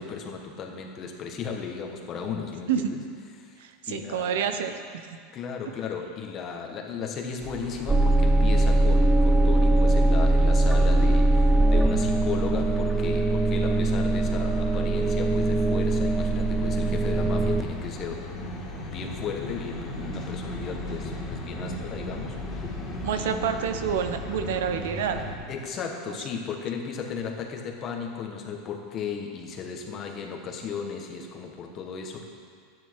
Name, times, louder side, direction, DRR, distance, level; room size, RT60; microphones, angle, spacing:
voice 1, 0.0-3.0 3.4-3.6 3.9-4.5 5.3-18.3 18.9-22.6 23.1-23.5 25.5-32.2, left 6 dB, 40° left, 2 dB, 1.7 m, -35 dB
voice 2, 3.6-4.7 23.0-25.2 26.1-26.2, right 7 dB, 80° right, 7 dB, 0.9 m, -28 dB
sound 1, 7.4-25.4, left 1 dB, 25° left, 2.8 m, -38 dB
sound 2, 7.9-17.6, right 2 dB, 10° right, 0.6 m, -21 dB
12.0 x 9.8 x 4.9 m, 2.1 s
supercardioid pair, 115°, 0 cm